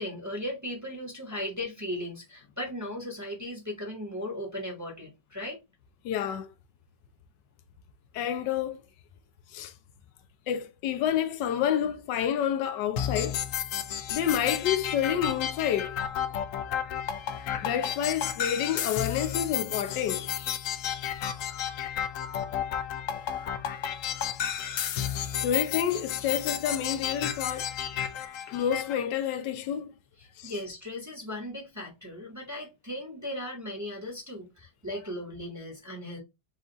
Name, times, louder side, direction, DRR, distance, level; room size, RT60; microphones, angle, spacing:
voice 1, 0.0-5.6 30.2-36.2, left 1 dB, 10° right, 1.0 m, -37 dB
voice 2, 6.0-6.5 8.1-8.8 9.5-9.7 10.5-13.4 14.1-16.0 17.5-20.3 25.4-27.7 28.5-29.9 30.4-30.5, left 9 dB, 85° left, 1.3 m, -29 dB
sound 1, 13.0-28.9, left 9 dB, 70° left, 0.8 m, -32 dB
4.9 x 2.4 x 3.8 m
omnidirectional pair, 1.8 m